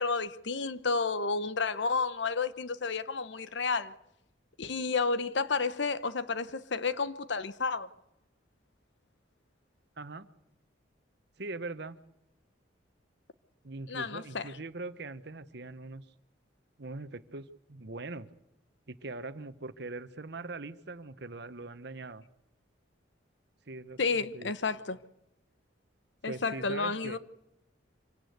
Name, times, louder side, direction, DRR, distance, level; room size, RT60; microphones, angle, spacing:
voice 1, 0.0-3.9 4.6-7.9 13.9-14.5 24.0-25.0 26.2-27.2, left 4 dB, 65° left, 0.9 m, -31 dB
voice 2, 11.4-12.0 13.6-16.0 16.8-18.3 18.9-22.2 23.7-24.0 24.3-24.5 26.2-27.2, right 3 dB, 60° right, 1.1 m, -41 dB
25.5 x 17.0 x 8.1 m
head